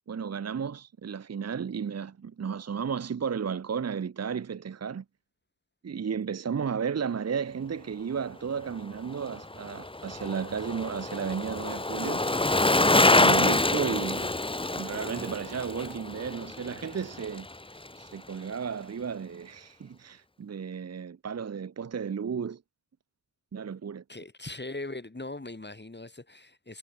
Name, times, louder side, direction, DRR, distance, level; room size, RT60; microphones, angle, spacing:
voice 1, 0.1-5.0 5.8-12.3 12.9-14.3 14.7-17.5 18.0-22.6 23.5-24.0, right 6 dB, 60° right, 0.7 m, -33 dB
Bicycle, 9.1-17.6 17.9-18.0, left 2 dB, 20° left, 1.0 m, -26 dB
voice 2, 24.1-26.8, left 2 dB, 35° left, 5.2 m, -40 dB
wide cardioid pair, 75°, 30 cm